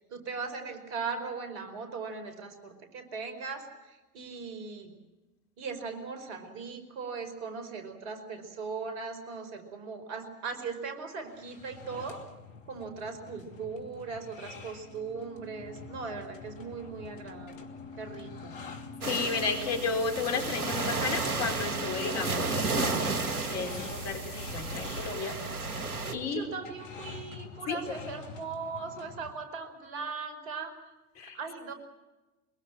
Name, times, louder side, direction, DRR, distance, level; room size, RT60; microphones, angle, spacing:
voice 1, 0.0-4.9 5.6-12.2 12.7-17.7 18.0-18.6 25.2-25.4 26.0-30.7 31.3-31.7, right 5 dB, 50° right, 8 dB, 5.0 m, -39 dB
sound 1, 11.3-29.3, left 4 dB, 55° left, 2.8 m, -47 dB
sound 2, 14.8-24.9, left 3 dB, ahead, 6.0 m, -47 dB
sound 3, 19.0-26.1, right 3 dB, 75° right, 2.3 m, -33 dB
voice 2, 19.1-23.2 23.4-25.4 26.1-26.5 27.7-27.8 31.2-31.4, left 5 dB, 35° left, 4 dB, 4.9 m, -33 dB
23.5 x 22.5 x 7.7 m, 1.1 s
figure-of-eight pair, 90°, 45 cm